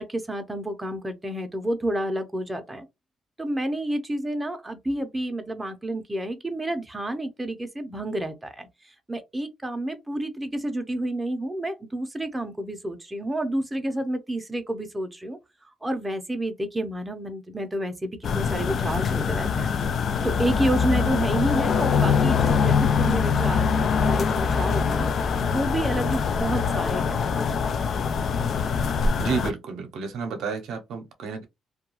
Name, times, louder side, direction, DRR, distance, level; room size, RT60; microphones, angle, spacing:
voice 1, 0.0-2.9 3.4-8.7 9.1-15.4 15.8-19.7 20.2-25.1 25.4-27.7, right 1 dB, 15° right, 0.6 m, -29 dB
sound 1, 18.2-29.5, left 6 dB, 60° left, 0.3 m, -23 dB
voice 2, 29.2-31.4, right 5 dB, 80° right, 0.6 m, -31 dB
2.3 x 2.2 x 3.0 m
cardioid pair, 90°, 0 cm